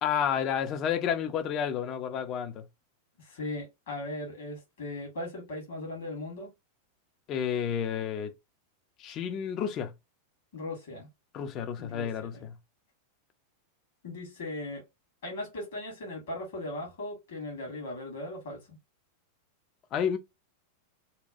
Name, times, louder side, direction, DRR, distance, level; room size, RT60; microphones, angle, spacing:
voice 1, 0.0-2.6 7.3-8.3 9.0-9.9 11.3-12.5 19.9-20.2, left 8 dB, 35° left, 0.4 m, -30 dB
voice 2, 3.2-6.5 10.5-11.1 11.8-12.5 14.0-14.8 15.2-18.6, left 1 dB, 60° left, 1.4 m, -38 dB
2.8 x 2.2 x 2.5 m
figure-of-eight pair, 90°, 0 cm